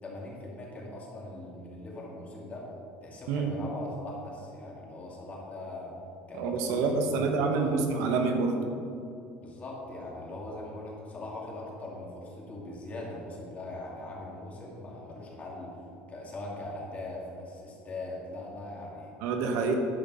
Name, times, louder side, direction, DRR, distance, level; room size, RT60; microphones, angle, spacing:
voice 1, 0.0-2.7 3.0-5.9 6.3-7.8 9.4-15.8 16.1-19.1 19.6-19.8, left 2 dB, 30° left, -3 dB, 2.3 m, -41 dB
voice 2, 6.3-8.6 19.2-19.7, right 4 dB, 75° right, 3 dB, 1.2 m, -27 dB
10.5 x 5.3 x 5.6 m, 2.6 s
cardioid pair, 125°, 5 cm